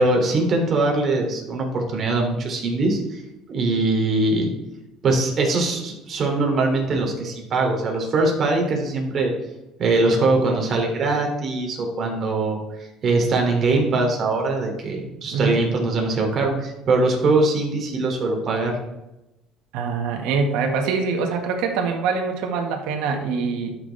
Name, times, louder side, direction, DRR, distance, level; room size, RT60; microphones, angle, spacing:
voice 1, 0.0-3.2 3.5-4.5 5.0-9.3 9.8-18.8, right 2 dB, 45° right, 1 dB, 2.9 m, -22 dB
voice 2, 15.3-15.6 19.7-23.8, right 4 dB, 80° right, 4 dB, 1.7 m, -24 dB
12.5 x 6.2 x 3.4 m, 0.95 s
cardioid pair, 110°, 0 cm